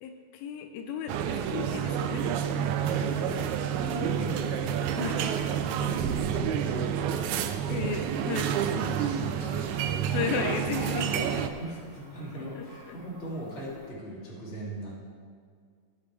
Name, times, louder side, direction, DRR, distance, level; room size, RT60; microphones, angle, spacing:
voice 1, 0.0-2.8 3.9-4.1 4.4-4.6 5.0-5.2 7.7-8.5 10.1-11.5 12.5-13.0, left 6 dB, 85° left, 6 dB, 2.5 m, -35 dB
sound 1, 1.1-11.5, right 9 dB, 85° right, 1.7 m, -29 dB
voice 2, 2.8-4.4 4.7-7.8 8.4-9.9 11.6-14.9, right 1 dB, 20° left, -6 dB, 2.4 m, -40 dB
sound 2, 8.1-13.9, right 2 dB, 65° right, 5.0 m, -53 dB
18.5 x 7.0 x 3.4 m, 2.1 s
omnidirectional pair, 4.1 m